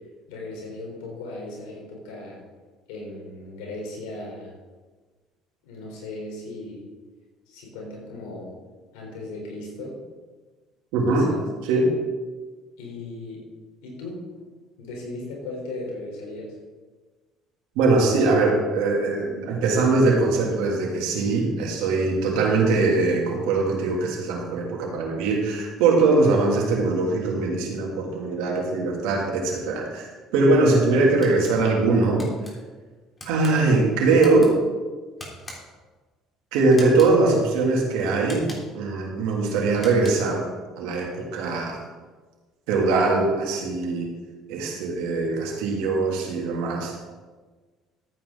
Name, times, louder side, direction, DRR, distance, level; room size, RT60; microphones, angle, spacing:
voice 1, 0.3-2.4 2.9-4.5 5.6-6.9 7.5-8.5 8.9-10.0 11.1-11.4 12.8-13.4 13.8-14.3 14.8-16.6, left 2 dB, 85° left, -2 dB, 4.2 m, -37 dB
voice 2, 10.9-11.3 11.6-11.9 17.7-32.2 33.2-34.5 36.5-38.5 38.7-40.4 40.8-41.8 42.7-44.1 44.5-47.0, right 3 dB, 80° right, -1 dB, 2.9 m, -21 dB
sound 1, 31.2-31.6 32.2-32.5 33.2-33.5 34.2-34.5 35.2-35.8 36.7-37.1 38.2-38.8 39.7-40.3, left 1 dB, 25° left, 3.7 m, -41 dB
14.0 x 9.2 x 4.0 m, 1.3 s
supercardioid pair, 75°, 0 cm